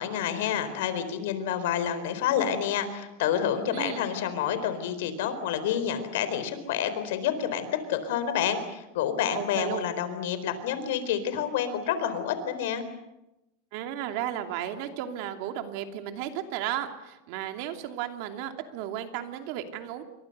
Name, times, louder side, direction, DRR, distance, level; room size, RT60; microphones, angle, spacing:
voice 1, 0.0-12.8, left 9 dB, 70° left, 11 dB, 4.1 m, -29 dB
voice 2, 3.7-4.1 9.3-9.9 13.7-20.0, right 11 dB, 50° right, 6 dB, 2.7 m, -34 dB
28.5 x 24.5 x 6.7 m, 0.94 s
supercardioid pair, 165°, 0 cm